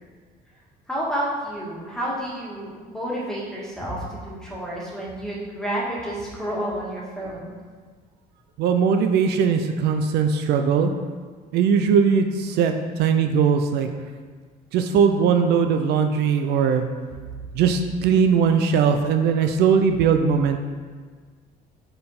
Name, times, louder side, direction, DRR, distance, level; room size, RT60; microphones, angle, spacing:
voice 1, 0.9-7.5, equal, 5° left, -5 dB, 1.7 m, -30 dB
voice 2, 8.6-10.9 11.5-13.9 14.7-16.9 17.5-20.6, right 6 dB, 75° right, 6 dB, 0.5 m, -20 dB
5.3 x 4.4 x 4.2 m, 1.5 s
cardioid pair, 110°, 17 cm